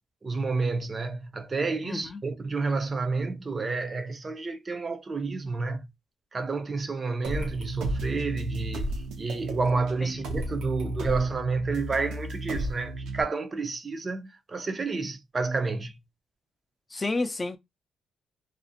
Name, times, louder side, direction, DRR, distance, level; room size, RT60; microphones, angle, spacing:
voice 1, 0.2-5.9 6.3-16.0, right 4 dB, 30° right, 0.4 m, -30 dB
voice 2, 1.8-2.2 10.0-10.2 16.9-17.6, left 2 dB, 25° left, 0.4 m, -31 dB
sound 1, 7.2-13.2, right 1 dB, 85° right, 0.7 m, -33 dB
2.4 x 2.0 x 2.7 m
cardioid pair, 90°, 0 cm